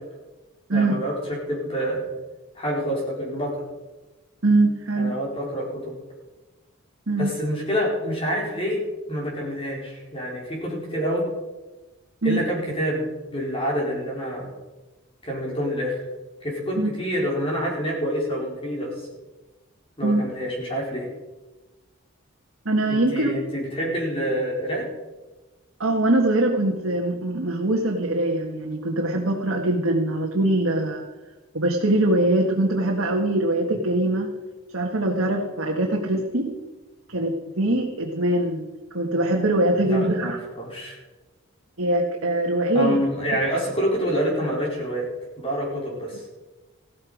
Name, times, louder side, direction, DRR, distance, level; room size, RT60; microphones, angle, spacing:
voice 1, 0.7-2.0 2.5-3.6 5.0-5.9 7.2-8.8 9.1-11.3 12.2-13.0 13.3-14.5 15.2-16.0 16.4-19.1 20.0-21.1 22.9-24.9 39.9-41.0 42.7-45.1 45.4-46.3, equal, 25° left, -2 dB, 4.6 m, -27 dB
voice 2, 4.4-5.2 7.1-7.3 12.2-12.4 16.8-16.9 20.0-20.2 22.7-23.3 25.8-31.0 31.5-34.3 34.7-36.5 37.1-38.7 38.9-40.4 41.8-43.0, right 1 dB, 70° right, 0 dB, 1.7 m, -22 dB
15.5 x 13.0 x 5.1 m, 1.2 s
head